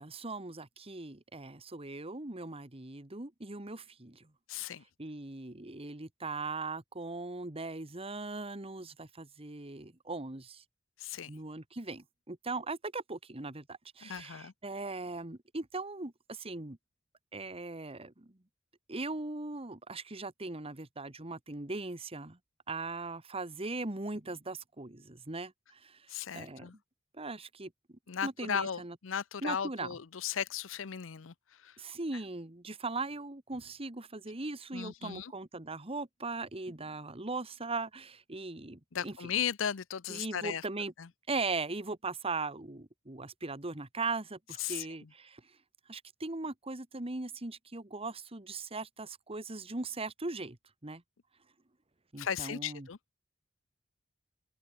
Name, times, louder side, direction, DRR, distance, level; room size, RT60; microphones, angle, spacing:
voice 1, 0.0-4.3 5.0-10.6 11.3-16.8 17.3-18.3 18.9-22.4 22.7-26.0 26.3-26.7 27.2-28.9 29.4-30.0 31.8-39.3 40.1-40.9 41.3-45.4 45.9-50.6 50.8-51.0 52.1-52.9, right 3 dB, 30° right, 1.7 m, -39 dB
voice 2, 4.5-4.8 11.0-11.3 14.0-14.5 26.1-26.8 28.1-31.3 31.6-31.7 34.7-35.3 38.9-40.6 41.0-41.1 44.6-44.9 52.2-53.0, left 8 dB, 80° left, 0.6 m, -36 dB
open air
head